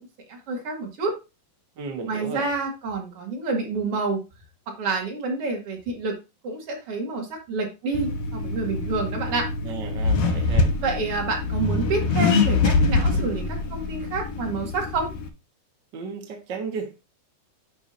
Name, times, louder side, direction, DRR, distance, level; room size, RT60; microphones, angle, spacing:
voice 1, 0.3-1.1 2.0-4.2 4.7-6.2 6.4-9.5 10.8-15.1, right 3 dB, 45° right, 2.5 m, -28 dB
voice 2, 1.8-2.5 9.6-10.7 15.9-17.0, right 5 dB, 65° right, 1.1 m, -34 dB
Accelerating revving vroom, 7.9-15.3, left 3 dB, 85° left, 1.3 m, -24 dB
10.0 x 6.0 x 2.7 m
omnidirectional pair, 4.3 m